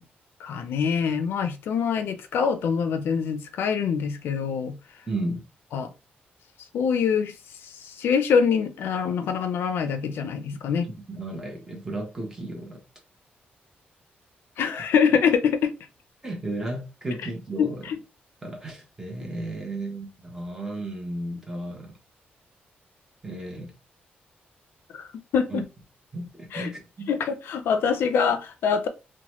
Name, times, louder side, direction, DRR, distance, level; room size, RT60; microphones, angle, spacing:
voice 1, 0.4-4.7 5.7-5.9 6.7-7.3 8.0-10.9 14.6-15.7 17.6-18.0 24.9-25.1 25.3-25.7 26.5-26.7 27.1-28.9, left 6 dB, 75° left, 0.4 m, -24 dB
voice 2, 5.1-5.4 10.5-10.6 11.1-12.8 16.2-17.9 18.4-22.0 23.2-23.7 25.5-25.6 26.1-27.1, right 2 dB, 15° right, 0.9 m, -34 dB
2.8 x 2.2 x 3.0 m
wide cardioid pair, 165°, 4 cm